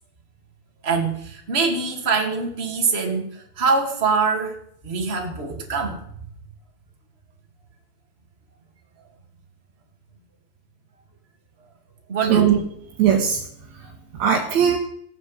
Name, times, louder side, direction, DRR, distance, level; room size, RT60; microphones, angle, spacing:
voice 1, 0.8-4.6 4.8-6.0 12.1-12.5, right 4 dB, 20° right, 1 dB, 2.3 m, -23 dB
voice 2, 12.3-12.6 13.0-13.4 13.7-14.8, right 8 dB, 55° right, -1 dB, 2.6 m, -19 dB
15.5 x 9.5 x 8.3 m, 0.69 s
omnidirectional pair, 4.4 m